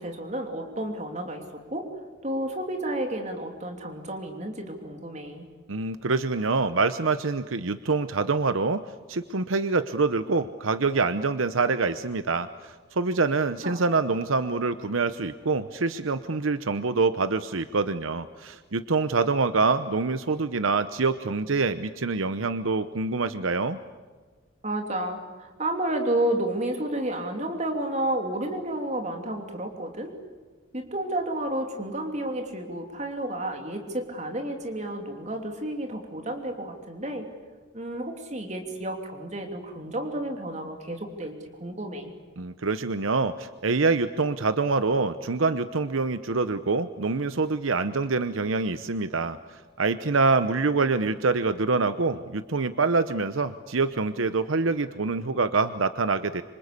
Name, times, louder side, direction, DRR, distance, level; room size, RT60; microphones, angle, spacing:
voice 1, 0.0-1.9 2.2-5.5 13.6-13.9 24.6-30.1 30.7-37.3 37.7-41.3 41.6-42.1, right 1 dB, 35° right, 4 dB, 2.9 m, -31 dB
voice 2, 5.7-8.8 9.1-23.8 42.4-56.4, right 4 dB, 90° right, 11 dB, 0.9 m, -25 dB
26.5 x 26.0 x 8.4 m, 1.4 s
head